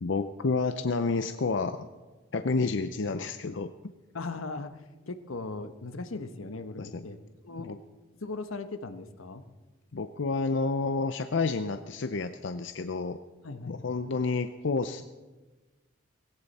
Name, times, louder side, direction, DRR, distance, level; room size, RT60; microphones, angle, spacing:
voice 1, 0.0-1.9 2.3-3.7 6.8-7.0 7.6-7.8 9.9-13.2 13.7-15.0, left 4 dB, 60° left, 9 dB, 0.6 m, -29 dB
voice 2, 4.1-7.7 8.1-9.4 13.4-13.8, left 3 dB, 85° left, 9 dB, 1.1 m, -38 dB
18.0 x 17.0 x 4.2 m, 1.2 s
head